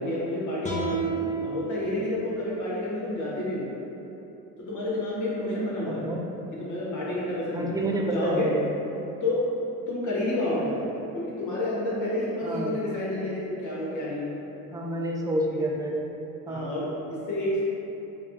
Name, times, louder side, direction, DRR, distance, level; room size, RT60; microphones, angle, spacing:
voice 1, 0.0-3.7 4.7-6.0 6.6-8.5 9.2-9.5 9.9-10.9 11.1-14.3 15.5-15.7 16.5-17.6, left 1 dB, 45° left, -7 dB, 1.4 m, -29 dB
sound 1, 0.6-3.8, right 3 dB, 15° left, 0.8 m, -34 dB
voice 2, 5.9-6.2 7.5-8.6 12.4-12.8 14.7-16.0 16.5-16.7, right 1 dB, 10° right, -1 dB, 0.4 m, -29 dB
4.9 x 2.4 x 2.7 m, 2.9 s
hypercardioid pair, 70°, 41 cm